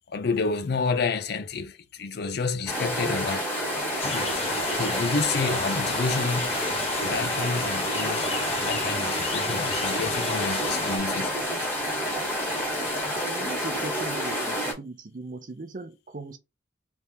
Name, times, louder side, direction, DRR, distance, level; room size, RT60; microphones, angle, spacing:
voice 1, 0.1-3.5 4.0-4.4 4.8-6.5 6.9-8.3 8.6-11.3, left 4 dB, 60° left, 0.5 m, -29 dB
sound 1, 2.7-14.7, equal, 15° left, 1.6 m, -29 dB
sound 2, 4.0-11.0, left 3 dB, 30° left, 0.9 m, -32 dB
voice 2, 13.2-16.4, right 2 dB, 45° right, 0.6 m, -38 dB
3.4 x 3.4 x 2.8 m
head